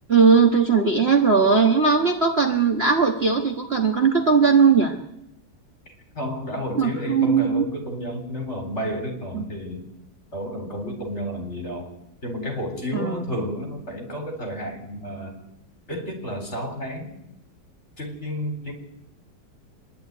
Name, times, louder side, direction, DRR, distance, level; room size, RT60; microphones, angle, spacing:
voice 1, 0.1-5.0 6.7-7.6 9.3-9.4 12.9-13.2, right 5 dB, 35° right, 2 dB, 1.6 m, -19 dB
voice 2, 5.9-9.8 10.3-11.9 12.2-15.4 15.9-17.1 18.0-18.7, equal, 35° left, 3 dB, 4.4 m, -31 dB
25.5 x 11.5 x 9.4 m, 0.85 s
omnidirectional pair, 2.0 m